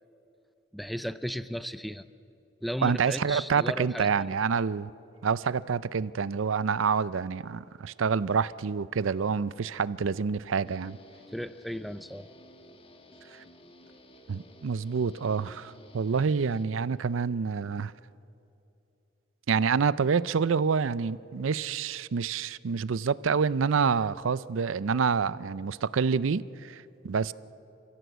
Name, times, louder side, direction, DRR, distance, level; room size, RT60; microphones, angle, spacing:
voice 1, 0.7-2.1 2.6-4.4 11.3-12.3, equal, ahead, 0.5 m, -35 dB
voice 2, 2.8-4.9 5.2-11.0 13.3-13.4 14.3-17.9 19.5-27.3, right 6 dB, 75° right, 0.5 m, -27 dB
Guitar, 10.6-17.2, left 1 dB, 30° left, 1.4 m, -54 dB
29.5 x 16.0 x 8.0 m
head